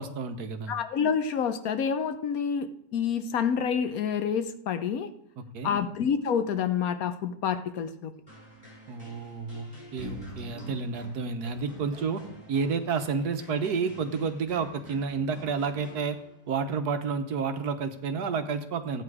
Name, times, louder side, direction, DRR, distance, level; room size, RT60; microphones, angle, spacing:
voice 1, 0.0-0.7 5.4-5.8 8.9-12.2 12.5-16.2 16.5-19.0, right 5 dB, 75° right, 8 dB, 1.5 m, -30 dB
voice 2, 0.7-5.1 5.6-8.1, left 7 dB, 65° left, 10 dB, 1.2 m, -28 dB
sound 1, 8.3-16.6, right 1 dB, 20° left, 5.6 m, -50 dB
sound 2, 9.9-10.8 11.9-12.0 12.6-12.7 12.9-13.3, right 1 dB, ahead, 3.7 m, -43 dB
14.0 x 8.8 x 4.8 m, 0.73 s
omnidirectional pair, 1.7 m